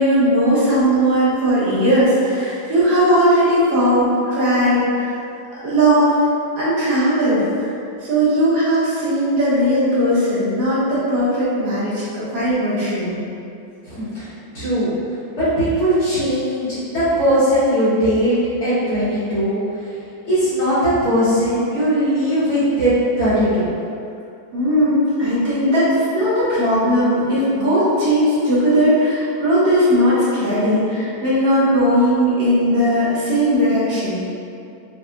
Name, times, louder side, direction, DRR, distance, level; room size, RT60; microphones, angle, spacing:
voice 1, 0.0-5.1 5.6-6.1 6.6-7.7 8.0-13.2 24.5-34.2, equal, 60° right, -10 dB, 1.5 m, -18 dB
voice 2, 13.8-14.9 15.3-20.0 20.2-23.7, equal, 55° left, -13 dB, 1.8 m, -19 dB
5.0 x 2.7 x 2.2 m, 2.6 s
omnidirectional pair, 2.1 m